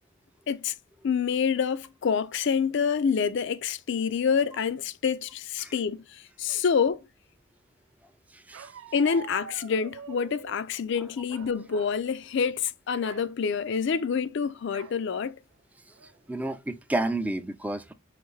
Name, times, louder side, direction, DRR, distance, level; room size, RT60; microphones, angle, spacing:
voice 1, 1.0-7.0 8.9-15.4, left 6 dB, 60° left, 0.4 m, -27 dB
voice 2, 8.3-8.7 16.3-17.9, right 2 dB, 5° right, 0.4 m, -31 dB
Bark, 8.5-10.6 11.3-12.0 12.4-12.6 13.0-13.3 14.7-15.0 15.5-15.6 16.0-16.4, right 7 dB, 75° right, 0.4 m, -45 dB
5.7 x 2.6 x 3.1 m
head